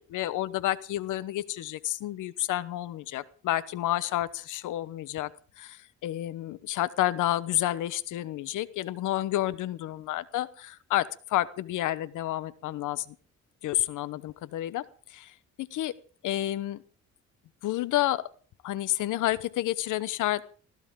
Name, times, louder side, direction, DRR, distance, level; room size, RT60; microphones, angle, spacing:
voice 1, 0.0-5.3 5.6-13.2 13.6-14.8 15.1-15.3 15.6-15.9 16.2-16.8 17.6-18.2 18.6-20.5, left 14 dB, 85° left, 17 dB, 1.0 m, -30 dB
21.5 x 14.5 x 3.7 m, 0.41 s
cardioid pair, 90°, 30 cm